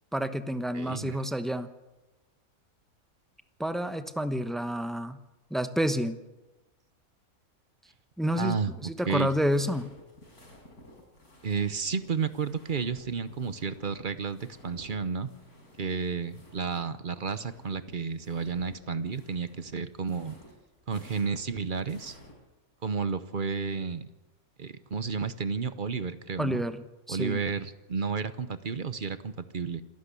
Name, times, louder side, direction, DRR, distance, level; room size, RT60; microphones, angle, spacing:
voice 1, 0.1-1.7 3.6-5.2 5.5-6.2 8.2-9.9 26.4-26.8 27.1-27.4, equal, ahead, 10 dB, 0.7 m, -29 dB
voice 2, 0.7-1.2 8.3-9.3 11.4-15.3 15.8-20.4 20.9-22.2 22.8-24.1 24.6-26.6 27.1-29.8, right 5 dB, 40° right, 13 dB, 0.9 m, -32 dB
sound 1, 9.2-16.9 17.1-22.3, left 1 dB, 90° left, 5.4 m, -53 dB
27.0 x 11.5 x 8.3 m, 1.1 s
omnidirectional pair, 1.5 m